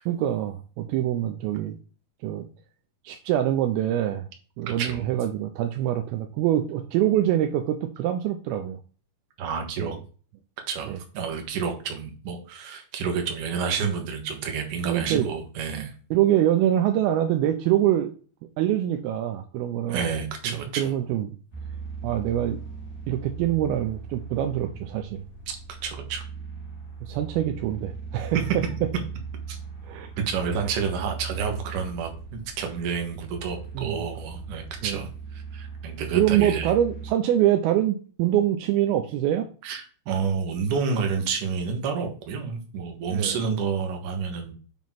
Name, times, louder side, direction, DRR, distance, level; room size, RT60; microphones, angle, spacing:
voice 1, 0.1-1.7 2.2-2.5 3.1-4.3 4.6-8.8 9.8-9.9 10.9-11.0 14.9-15.3 16.1-18.1 18.6-20.0 20.4-21.3 22.0-22.6 23.1-25.2 27.0-28.4 29.9-30.1 33.8-34.0 34.8-35.0 36.2-39.5 43.1-43.4, right 12 dB, 85° right, 6 dB, 2.5 m, -24 dB
voice 2, 4.7-5.1 9.4-10.0 10.7-15.9 19.9-20.9 25.5-25.6 25.8-26.2 28.5-28.6 29.5-29.6 30.3-36.7 39.6-44.5, right 6 dB, 60° right, 4 dB, 2.6 m, -29 dB
sound 1, 21.5-37.1, right 5 dB, 50° left, 1.1 m, -38 dB
7.3 x 3.1 x 5.8 m, 0.39 s
omnidirectional pair, 4.5 m